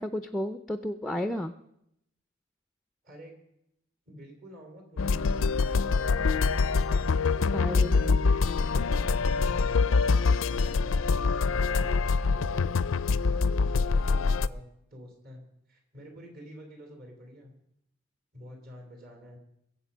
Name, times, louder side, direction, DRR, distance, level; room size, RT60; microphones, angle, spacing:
voice 1, 0.0-1.5 7.5-8.2, left 1 dB, ahead, 9 dB, 0.4 m, -33 dB
voice 2, 4.1-6.4 8.9-13.0 13.2-14.6 14.9-15.4 15.7-17.5 18.3-19.4, equal, 50° right, 3 dB, 3.4 m, -48 dB
sound 1, 5.0-14.5, left 4 dB, 80° left, 0.4 m, -25 dB
22.0 x 7.6 x 5.5 m, 0.80 s
head